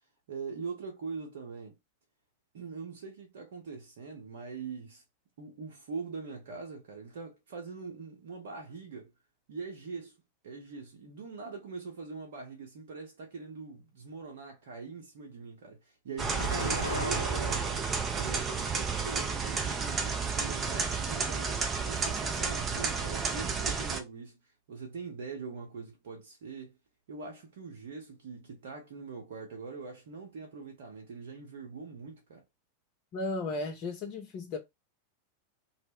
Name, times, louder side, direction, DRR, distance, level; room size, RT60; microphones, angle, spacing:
voice 1, 0.3-1.7 2.5-5.0 5.4-9.1 9.5-10.1 10.4-17.7 18.1-24.4 24.7-26.8 27.1-32.4, right 4 dB, 55° right, 0.7 m, -42 dB
sound 1, 16.2-24.0, right 5 dB, 25° right, 0.5 m, -31 dB
Explosion, 16.4-18.0 18.6-19.5, left 2 dB, 85° left, 0.3 m, -38 dB
voice 2, 33.1-34.6, left 2 dB, 40° left, 0.7 m, -35 dB
2.1 x 2.0 x 3.5 m
figure-of-eight pair, 90°, 0 cm